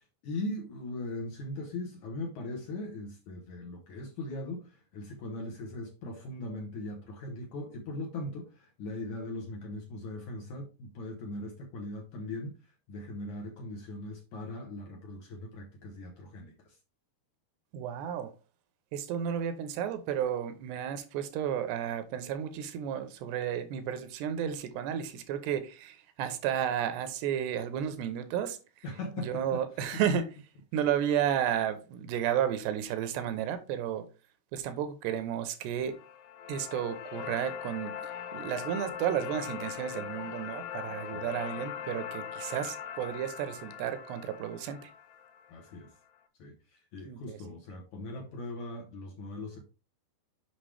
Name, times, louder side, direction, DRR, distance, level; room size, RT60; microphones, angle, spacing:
voice 1, 0.0-12.5 12.9-16.8 28.8-30.0 41.1-41.4 45.5-45.9 46.4-49.6, left 2 dB, 65° left, 2.1 m, -40 dB
voice 2, 17.7-18.3 18.9-28.6 29.2-30.3 30.7-34.1 34.5-36.0 36.5-37.9 38.3-44.9 47.1-47.4, right 9 dB, 80° right, 3.0 m, -32 dB
sound 1, 35.8-45.9, left 9 dB, 85° left, 1.9 m, -41 dB
7.5 x 6.0 x 3.4 m
omnidirectional pair, 4.8 m